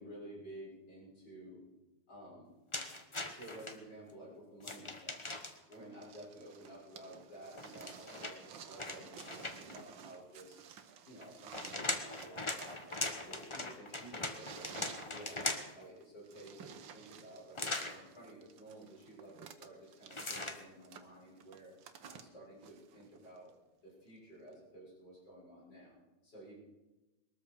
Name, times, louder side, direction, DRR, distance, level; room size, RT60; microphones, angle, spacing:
voice 1, 0.0-1.6 2.1-2.6 3.2-5.2 5.7-10.6 11.0-14.8 15.1-15.5 15.7-21.7 22.1-23.5 23.8-26.5, right 1 dB, 60° left, -5 dB, 7.6 m, -53 dB
sound 1, 2.7-3.8 4.6-5.7 7.5-9.8 11.2-15.8 17.6-18.0 20.1-20.6, left 2 dB, 20° left, 1.0 m, -40 dB
sound 2, 5.4-23.5 24.5-24.6, right 7 dB, 80° right, 1.8 m, -55 dB
21.5 x 13.5 x 4.9 m, 1.0 s
omnidirectional pair, 2.1 m